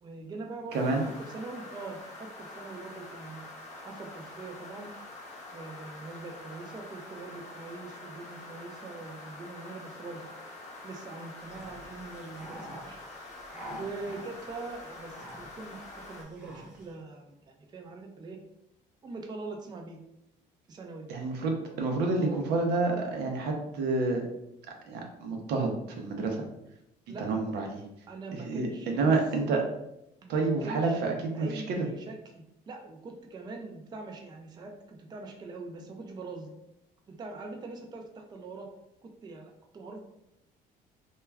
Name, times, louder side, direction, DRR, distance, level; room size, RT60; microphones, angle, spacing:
voice 1, 0.0-4.9 5.5-10.3 10.8-13.0 13.8-18.4 19.0-20.0 20.7-21.1 22.1-22.6 27.1-27.4 28.1-29.1 30.2-31.0 31.3-36.5 37.1-38.7 39.0-40.0, right 3 dB, 25° right, 2 dB, 0.4 m, -43 dB
sound 1, 0.7-16.2, left 2 dB, 45° left, 0.6 m, -46 dB
voice 2, 0.7-1.0 21.1-24.2 24.9-26.4 27.2-27.8 28.3-29.6 30.3-31.9, right 3 dB, 80° right, 2 dB, 0.6 m, -29 dB
sound 2, 11.4-16.9, equal, 5° right, 0.7 m, -48 dB
2.2 x 2.2 x 3.3 m, 0.83 s
cardioid pair, 110°, 17 cm